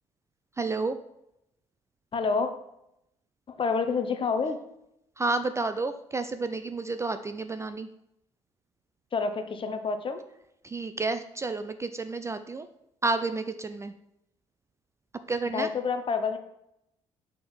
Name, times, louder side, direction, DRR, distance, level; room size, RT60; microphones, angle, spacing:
voice 1, 0.6-1.0 5.2-7.9 10.6-12.7 13.0-13.9 15.3-15.7, right 3 dB, 20° right, 9 dB, 0.3 m, -30 dB
voice 2, 2.1-2.5 3.5-4.6 9.1-10.2 15.5-16.4, left 5 dB, 35° left, 8 dB, 0.7 m, -28 dB
6.4 x 4.3 x 3.4 m, 0.83 s
figure-of-eight pair, 45°, 15 cm